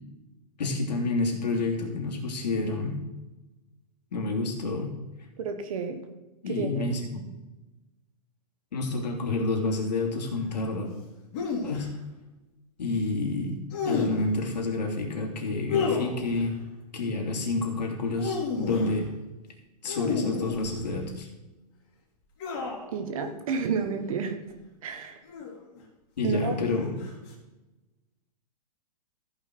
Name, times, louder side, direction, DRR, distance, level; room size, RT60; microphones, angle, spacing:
voice 1, 0.6-3.0 4.1-4.9 6.4-7.3 8.7-10.9 11.6-11.9 12.8-16.6 16.9-19.1 19.8-21.3 26.2-27.0, left 3 dB, 90° left, 1 dB, 2.9 m, -29 dB
voice 2, 5.4-6.0 6.5-6.9 22.9-24.4 24.8-25.2 26.2-26.7, right 5 dB, 55° right, 7 dB, 1.5 m, -31 dB
sound 1, 11.3-11.8 13.7-14.4 15.7-16.5 18.0-19.0 19.8-21.0 22.4-22.9 23.7-24.0 25.2-25.8 27.0-27.3, left 5 dB, 35° left, 3.2 m, -31 dB
14.5 x 5.6 x 4.6 m, 1.1 s
hypercardioid pair, 160°, 21 cm